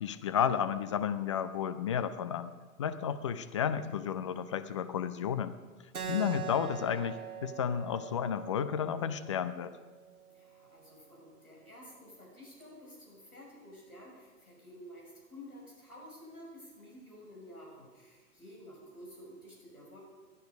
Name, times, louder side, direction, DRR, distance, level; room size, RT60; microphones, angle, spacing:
voice 1, 0.0-2.5 2.8-5.5 6.1-9.8, left 8 dB, 25° left, 13 dB, 0.4 m, -32 dB
Keyboard (musical), 5.9-11.0, right 8 dB, 80° right, 1.3 m, -43 dB
voice 2, 10.3-20.0, equal, 90° left, -3 dB, 6.3 m, -51 dB
19.5 x 11.0 x 5.1 m, 1.4 s
figure-of-eight pair, 110°, 43 cm